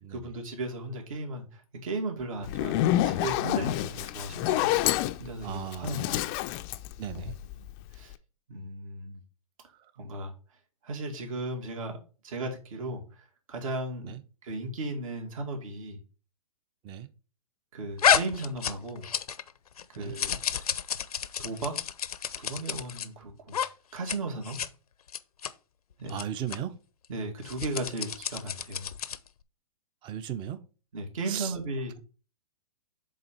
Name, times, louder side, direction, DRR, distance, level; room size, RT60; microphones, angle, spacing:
voice 1, 0.1-4.7 5.2-6.2 7.1-7.3 7.6-7.7 7.9-8.1 8.5-9.2 10.0-10.3 10.8-12.0 12.2-14.1 14.4-16.0 17.7-19.1 19.9-20.6 21.4-21.8 22.4-23.6 23.9-24.6 26.0-26.2 27.1-28.9 30.9-31.9, right 2 dB, 65° right, 2.3 m, -36 dB
Zipper (clothing), 2.4-7.7, left 14 dB, 30° left, 0.4 m, -28 dB
voice 2, 5.4-6.1 7.0-7.4 9.8-9.9 14.0-14.2 16.8-17.1 20.0-20.1 26.1-26.8 30.0-30.6 31.3-31.5, right 10 dB, 25° right, 0.6 m, -36 dB
sound 1, 18.0-19.5 19.8-23.1 23.5-23.7 24.0-24.2 24.4-24.7 25.1-25.5 26.1-26.2 26.5-26.6 27.4-29.3, left 8 dB, 80° left, 0.7 m, -30 dB
7.3 x 3.8 x 4.4 m
hypercardioid pair, 125°, 19 cm